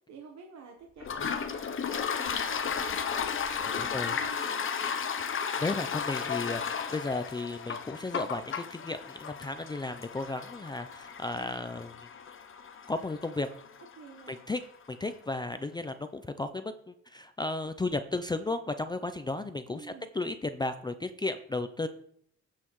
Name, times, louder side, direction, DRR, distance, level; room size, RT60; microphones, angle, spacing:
voice 1, 0.1-3.0 3.5-5.2 5.9-6.1 14.0-14.4 19.7-20.1, right 5 dB, 65° right, 1 dB, 1.2 m, -50 dB
Toilet flush, 1.0-14.4, left 6 dB, 40° left, 0.8 m, -34 dB
voice 2, 3.7-4.2 5.6-12.1 12.9-13.5 14.3-14.6 14.9-21.9, left 2 dB, 15° left, 9 dB, 0.4 m, -34 dB
15.5 x 5.6 x 3.1 m, 0.68 s
cardioid pair, 90°, 30 cm